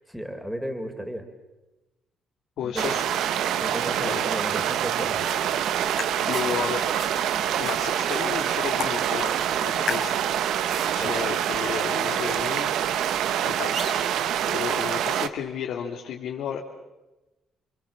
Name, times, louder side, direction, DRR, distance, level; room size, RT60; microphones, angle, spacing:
voice 1, 0.1-1.2 2.6-3.2 3.6-5.3 11.0-11.1, equal, 5° right, 5 dB, 3.7 m, -34 dB
voice 2, 2.6-3.0 4.0-4.3 5.9-6.9 7.6-9.3 9.6-10.2 10.9-12.7 13.4-13.8 14.5-16.6, left 8 dB, 80° left, 0 dB, 2.5 m, -32 dB
sound 1, 2.8-15.3, right 10 dB, 80° right, 1.2 m, -26 dB
sound 2, 5.0-14.2, right 3 dB, 50° right, 6.1 m, -41 dB
sound 3, 5.1-11.1, left 7 dB, 65° left, 3.7 m, -40 dB
29.5 x 23.5 x 7.5 m, 1.0 s
cardioid pair, 90°, 0 cm